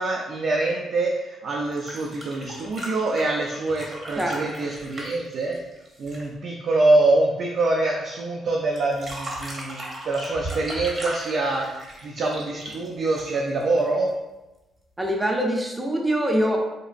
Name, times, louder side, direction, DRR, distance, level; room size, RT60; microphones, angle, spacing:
voice 1, 0.0-5.6 6.0-14.1, right 2 dB, 65° right, -1 dB, 0.4 m, -25 dB
sound 1, 1.7-6.3 8.8-13.6 15.0-15.1, right 1 dB, 40° right, 0.9 m, -37 dB
voice 2, 4.2-4.7 15.0-16.6, equal, 15° right, 0 dB, 0.5 m, -24 dB
4.0 x 2.5 x 2.4 m, 1.0 s
cardioid pair, 90°, 0 cm